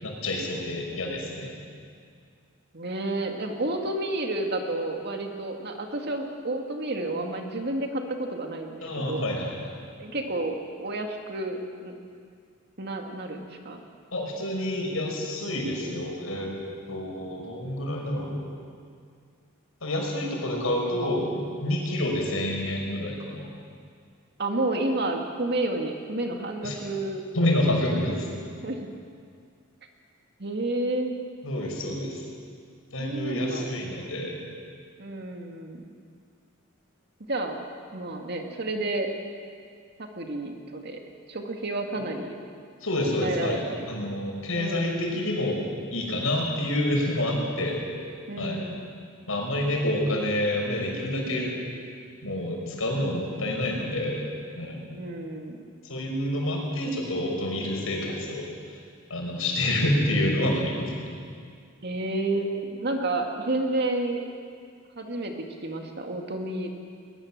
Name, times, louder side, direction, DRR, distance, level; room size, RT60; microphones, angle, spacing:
voice 1, 0.0-1.5 8.8-9.6 14.1-16.5 16.9-18.4 19.8-23.5 26.6-26.8 27.3-28.3 31.4-32.2 32.9-34.4 41.9-42.1 42.8-45.6 45.9-47.8 48.4-48.6 49.3-51.5 52.2-54.2 54.6-54.8 55.8-58.5 59.1-61.1, left 1 dB, 85° left, 0 dB, 5.9 m, -28 dB
voice 2, 2.7-9.2 10.0-11.9 12.8-13.8 24.4-27.2 28.6-28.8 30.4-31.1 33.0-33.7 35.0-35.8 37.3-37.6 37.9-39.1 40.0-41.0 41.3-42.3 43.0-43.9 44.5-45.1 48.3-48.8 54.9-55.6 61.8-64.2 65.0-66.7, right 2 dB, 55° right, 3 dB, 2.3 m, -30 dB
21.5 x 20.5 x 7.5 m, 2.2 s
head